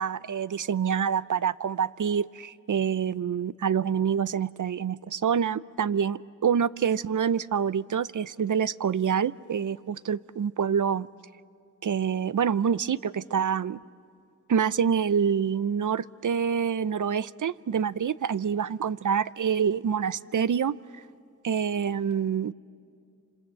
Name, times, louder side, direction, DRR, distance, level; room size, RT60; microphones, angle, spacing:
voice 1, 0.0-11.1 11.8-13.8 14.5-20.8 21.4-22.5, right 7 dB, 70° right, 17 dB, 0.6 m, -26 dB
29.0 x 26.5 x 7.6 m, 2.3 s
cardioid pair, 50°, 32 cm